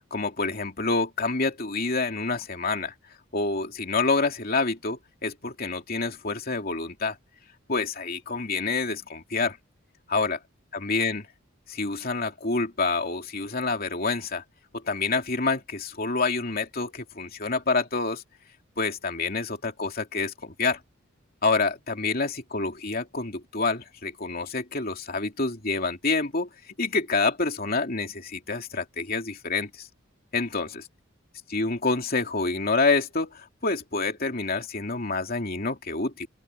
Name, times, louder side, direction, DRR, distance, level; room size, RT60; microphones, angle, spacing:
voice 1, 0.1-2.9 3.3-7.2 7.7-9.6 10.1-10.4 10.7-11.3 11.7-14.4 14.7-18.2 18.8-20.8 21.4-29.9 30.3-30.8 31.5-36.3, left 3 dB, 45° left, 3.0 m, -27 dB
open air
head